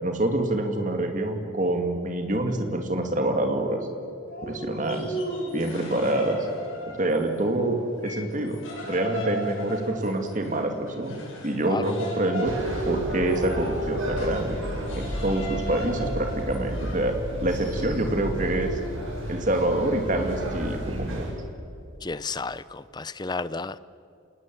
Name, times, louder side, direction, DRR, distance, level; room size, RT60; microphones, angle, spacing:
voice 1, 0.0-3.8 4.4-5.2 5.5-6.4 6.8-8.6 8.9-12.5 12.8-14.6 14.9-17.2 17.4-18.8 19.3-21.3, right 1 dB, 40° right, 5 dB, 2.5 m, -26 dB
Dog, 4.3-6.5 7.1-7.9 12.0-14.3 15.1-15.6 18.1-19.4, right 1 dB, 50° left, 4.6 m, -35 dB
sound 1, 4.7-7.5 7.8-18.1, equal, 70° left, 7.9 m, -39 dB
voice 2, 11.7-12.0 22.0-23.8, left 3 dB, 20° left, 16 dB, 0.5 m, -32 dB
sound 2, 12.4-21.3, equal, 70° right, 7.8 m, -33 dB
27.0 x 19.5 x 7.8 m, 2.6 s
head